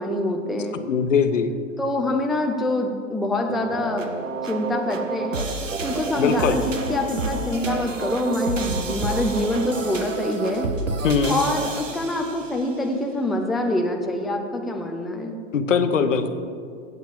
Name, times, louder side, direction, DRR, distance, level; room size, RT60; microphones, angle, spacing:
voice 1, 0.0-0.8 1.8-4.1 4.4-5.4 5.8-10.7 11.3-15.4, left 1 dB, ahead, 2 dB, 0.4 m, -25 dB
voice 2, 0.8-1.5 6.2-6.6 11.0-11.4 15.5-16.3, left 6 dB, 80° left, 9 dB, 0.9 m, -21 dB
sound 1, 3.5-12.7, right 3 dB, 90° right, 1.0 m, -29 dB
8.2 x 7.3 x 7.1 m, 2.2 s
figure-of-eight pair, 105°, 37 cm